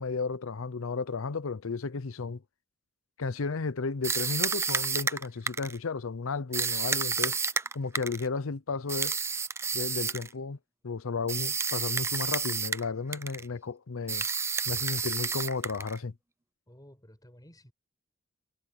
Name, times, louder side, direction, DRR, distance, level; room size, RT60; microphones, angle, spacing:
voice 1, 0.0-2.4 3.2-7.4 7.7-9.2 9.7-10.6 10.8-14.2 14.7-16.1, left 4 dB, 85° left, 0.7 m, -33 dB
sound 1, 4.0-5.8 6.5-8.3 8.9-10.3 11.3-12.9 13.1-13.5 14.1-16.0, right 5 dB, 15° right, 0.4 m, -30 dB
voice 2, 16.7-17.7, equal, 20° left, 6.3 m, -54 dB
head